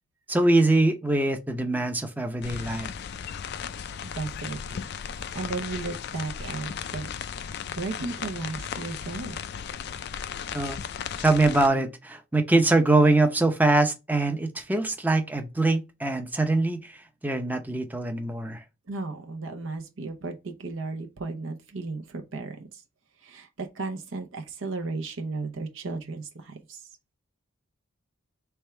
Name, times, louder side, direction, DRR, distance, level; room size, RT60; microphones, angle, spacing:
voice 1, 0.3-2.9 10.5-10.8 11.2-18.6, right 2 dB, 10° right, 0.6 m, -23 dB
sound 1, 2.4-11.7, left 7 dB, 55° left, 0.4 m, -36 dB
voice 2, 4.0-4.8 5.3-7.1 7.4-9.4 18.9-22.8 23.2-26.9, right 3 dB, 70° right, 0.7 m, -35 dB
3.5 x 3.4 x 4.4 m
head